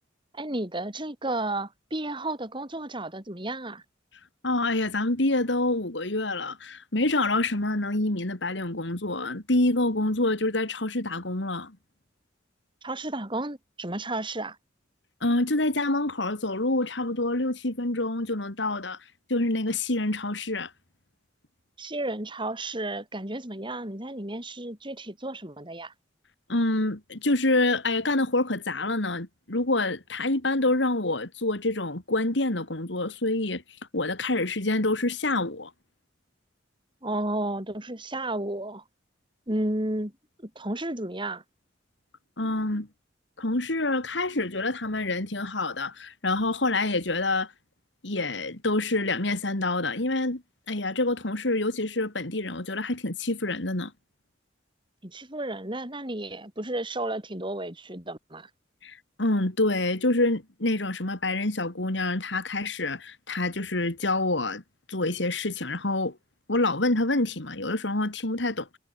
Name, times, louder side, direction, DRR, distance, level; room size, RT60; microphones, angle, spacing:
voice 1, 0.3-3.8 12.8-14.6 21.8-25.9 37.0-38.8 39.5-40.1 40.4-41.4 55.0-58.5, right 1 dB, 25° right, 4.8 m, -32 dB
voice 2, 4.4-11.8 15.2-19.0 19.3-20.7 26.5-33.6 33.9-35.7 42.4-42.9 43.4-47.5 48.0-50.4 50.7-53.9 58.8-64.6 64.9-66.2 66.5-68.8, left 2 dB, 75° left, 2.8 m, -27 dB
head